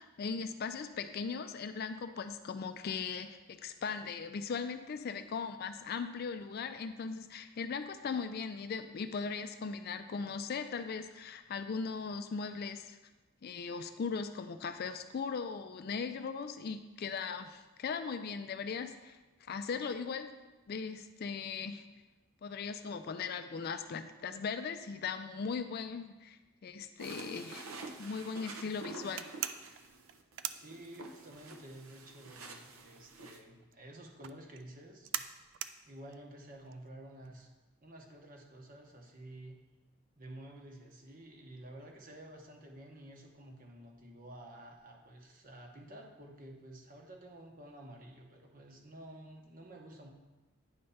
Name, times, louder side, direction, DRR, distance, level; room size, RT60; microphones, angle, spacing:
voice 1, 0.0-13.0 13.4-19.2 19.5-20.3 20.7-21.8 22.4-27.7 28.0-29.3, left 5 dB, 45° left, 9 dB, 0.3 m, -39 dB
sound 1, 27.0-33.4, right 3 dB, 75° right, 0.7 m, -49 dB
sound 2, 29.2-31.4 31.7-37.5, right 11 dB, 55° right, 0.3 m, -42 dB
voice 2, 30.6-35.1 35.9-37.5 37.8-39.6 40.2-50.1, right 1 dB, 40° right, 1 dB, 1.0 m, -51 dB
9.5 x 3.3 x 5.6 m, 1.1 s
head